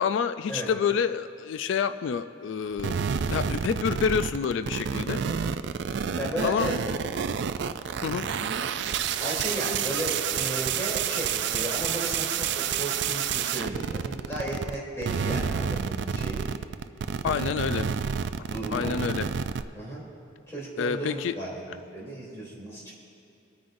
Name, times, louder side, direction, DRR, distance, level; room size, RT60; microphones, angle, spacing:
voice 1, 0.0-5.2 6.4-6.7 8.0-8.3 17.2-17.9 18.7-19.3 20.8-21.4, left 6 dB, 70° left, 11 dB, 0.3 m, -28 dB
sound 1, 2.6-11.9, equal, 40° right, 2.4 m, -56 dB
sound 2, 2.8-14.7 15.0-19.6, right 7 dB, 60° right, 0.4 m, -29 dB
voice 2, 5.1-5.4 6.2-6.8 8.1-8.4 9.2-16.5 18.5-18.9 19.7-20.0 20.5-22.9, right 1 dB, 15° left, -6 dB, 3.1 m, -34 dB
26.5 x 9.5 x 2.6 m, 2.8 s
head